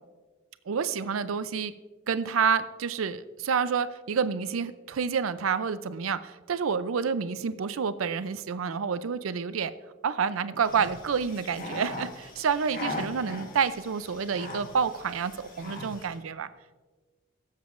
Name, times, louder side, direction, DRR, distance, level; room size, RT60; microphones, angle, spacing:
voice 1, 0.7-1.7 2.1-9.7 10.0-16.5, right 6 dB, 90° right, 13 dB, 0.5 m, -28 dB
sound 1, 10.6-16.2, left 2 dB, 45° left, 1.3 m, -40 dB
18.5 x 7.3 x 2.5 m, 1.3 s
head